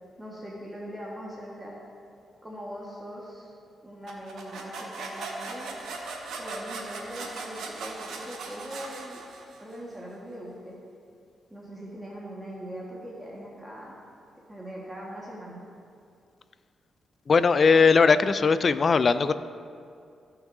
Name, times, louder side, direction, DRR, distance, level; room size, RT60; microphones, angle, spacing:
voice 1, 0.2-1.8 2.4-3.5 3.8-5.9 6.4-9.2 9.6-10.8 11.5-14.0 14.5-15.6, equal, 10° right, -4 dB, 1.5 m, -41 dB
sound 1, 4.1-9.7, right 3 dB, 75° right, 1.2 m, -39 dB
voice 2, 17.3-19.3, left 5 dB, 45° left, 13 dB, 0.3 m, -19 dB
14.5 x 5.9 x 2.7 m, 2.4 s
cardioid pair, 70°, 0 cm